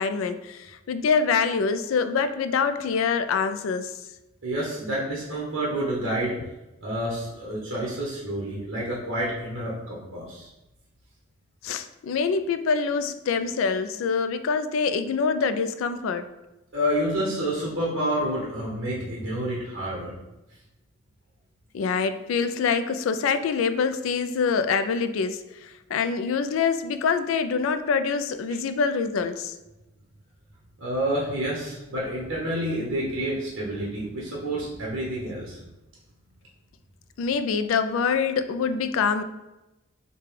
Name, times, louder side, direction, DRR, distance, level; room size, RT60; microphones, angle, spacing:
voice 1, 0.0-3.9 6.4-6.5 11.6-16.3 21.7-29.5 37.2-39.2, left 5 dB, 75° left, 11 dB, 0.3 m, -25 dB
voice 2, 4.4-6.3 6.8-10.5 16.7-20.2 30.8-35.6, right 1 dB, 80° right, -4 dB, 0.9 m, -29 dB
5.1 x 2.2 x 3.2 m, 0.98 s
head